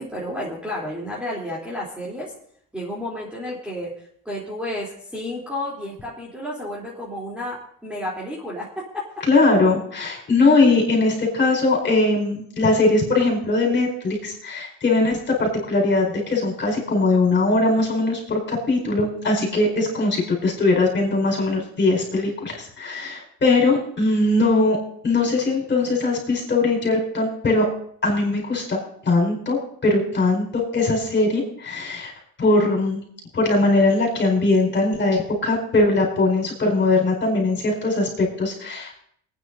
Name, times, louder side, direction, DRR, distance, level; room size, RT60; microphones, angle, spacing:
voice 1, 0.0-2.3 2.7-3.9 4.2-9.1, left 1 dB, 5° right, -6 dB, 3.2 m, -31 dB
voice 2, 9.3-24.8 25.0-27.6 28.0-28.8 29.0-32.1 32.4-33.0 33.3-39.0, left 2 dB, 35° left, 1 dB, 4.9 m, -20 dB
28.0 x 9.6 x 2.7 m, 0.64 s
cardioid pair, 115°, 34 cm